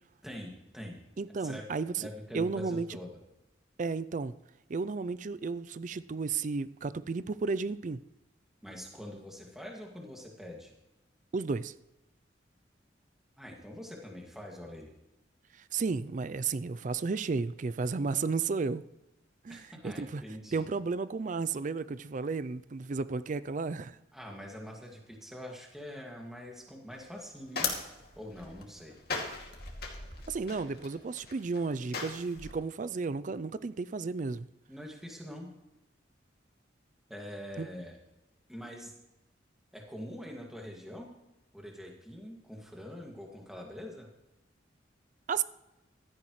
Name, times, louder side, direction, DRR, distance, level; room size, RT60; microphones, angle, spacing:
voice 1, 0.2-1.0 1.4-1.7 2.0-3.1 8.6-10.7 13.4-14.9 19.5-20.6 24.1-27.7 28.2-29.0 34.7-35.5 37.1-38.0 38.5-38.9 39.7-41.1 41.5-44.1, equal, ahead, -1 dB, 2.1 m, -44 dB
voice 2, 1.2-2.1 2.3-3.0 3.8-4.3 4.7-8.0 11.3-11.7 15.5-18.8 19.4-20.2 20.5-24.0 30.3-34.5 37.6-37.7 45.3-45.4, right 4 dB, 40° right, 15 dB, 0.4 m, -33 dB
sound 1, 26.9-32.5, left 4 dB, 55° left, 2.4 m, -39 dB
15.5 x 13.5 x 3.2 m, 0.96 s
head